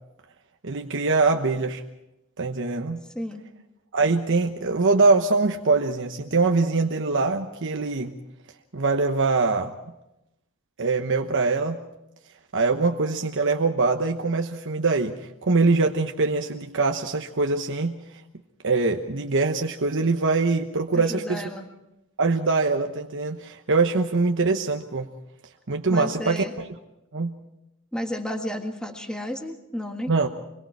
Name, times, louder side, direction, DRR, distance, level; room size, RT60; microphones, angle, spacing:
voice 1, 0.6-1.8 2.4-3.0 3.9-8.1 8.7-9.7 10.8-11.8 12.5-17.9 18.6-21.4 22.2-25.1 25.7-26.7 27.1-27.3 30.1-30.3, right 3 dB, 60° right, 4 dB, 1.1 m, -23 dB
voice 2, 21.0-21.7 25.9-26.5 27.9-30.1, left 1 dB, 5° left, 3 dB, 1.7 m, -32 dB
25.5 x 22.0 x 4.7 m, 0.87 s
head